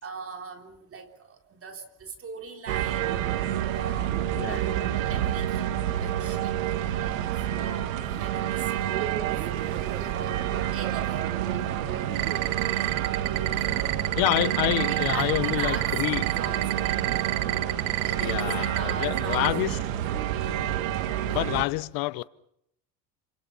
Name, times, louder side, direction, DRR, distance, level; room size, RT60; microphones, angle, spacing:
voice 1, 0.0-3.3 3.7-9.5 10.1-12.3 12.7-12.9 13.3-13.9 14.9-16.9 18.0-20.1, right 5 dB, 35° right, 3.6 m, -41 dB
sound 1, 2.7-21.6, right 11 dB, 90° right, 1.9 m, -28 dB
sound 2, 12.2-19.5, right 22 dB, 70° right, 1.4 m, -27 dB
voice 2, 14.2-16.2 18.2-19.7 21.2-22.2, left 20 dB, 65° left, 0.9 m, -27 dB
28.0 x 25.5 x 5.6 m
supercardioid pair, 95°, 39 cm